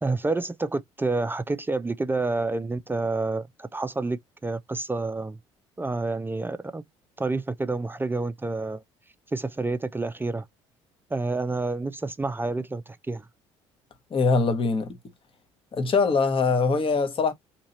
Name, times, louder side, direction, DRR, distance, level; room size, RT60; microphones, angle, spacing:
voice 1, 0.0-5.4 5.8-6.8 7.2-8.8 9.3-10.5 11.1-13.3, right 3 dB, 15° right, 0.5 m, -29 dB
voice 2, 14.1-14.9 15.7-17.3, left 4 dB, 40° left, 1.0 m, -22 dB
2.9 x 2.7 x 4.1 m
hypercardioid pair, 60°, 15 cm